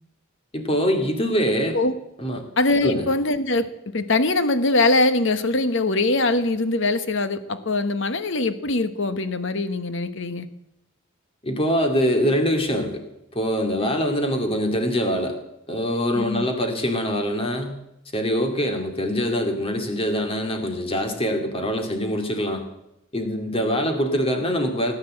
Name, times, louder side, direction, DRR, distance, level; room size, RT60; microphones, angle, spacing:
voice 1, 0.5-1.8 2.2-2.4 2.8-3.0 11.4-13.0 13.3-15.4 15.7-17.8 18.1-22.6 23.1-24.9, equal, 30° left, 4 dB, 2.6 m, -24 dB
voice 2, 2.6-3.7 3.9-10.5 13.8-13.9 16.1-16.5, left 2 dB, 60° left, 11 dB, 1.3 m, -22 dB
18.0 x 9.4 x 7.7 m, 0.84 s
head